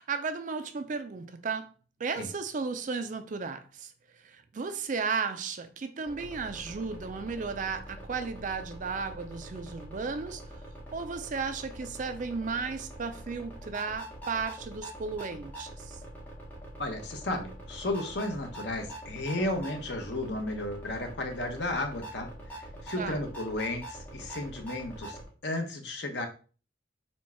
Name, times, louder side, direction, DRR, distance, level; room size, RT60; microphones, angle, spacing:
voice 1, 0.0-1.7 2.0-3.9 4.2-10.4 10.9-16.0 23.0-23.2, right 5 dB, 40° right, 0.4 m, -34 dB
sound 1, 6.1-25.3, right 1 dB, 10° left, 1.0 m, -44 dB
voice 2, 16.8-26.3, left 1 dB, 60° left, 0.9 m, -34 dB
4.4 x 2.3 x 4.3 m
head